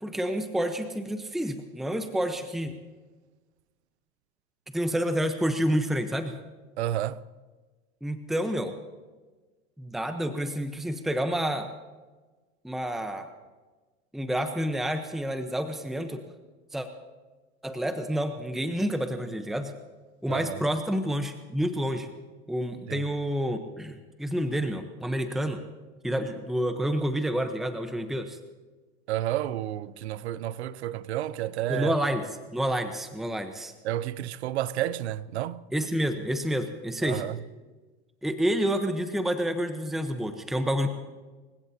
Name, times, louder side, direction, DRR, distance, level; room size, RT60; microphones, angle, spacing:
voice 1, 0.0-2.8 4.7-6.4 8.0-8.7 9.8-11.7 12.6-13.3 14.1-16.2 16.7-16.9 17.6-19.7 20.2-22.1 22.5-25.6 26.0-28.4 31.7-33.7 35.7-37.2 38.2-40.9, equal, ahead, 1.0 m, -29 dB
voice 2, 6.8-7.2 20.3-20.6 22.9-23.1 29.1-31.9 33.8-35.6 37.0-37.4, right 13 dB, 90° right, 0.7 m, -31 dB
26.5 x 16.0 x 2.9 m
supercardioid pair, 110°, 32 cm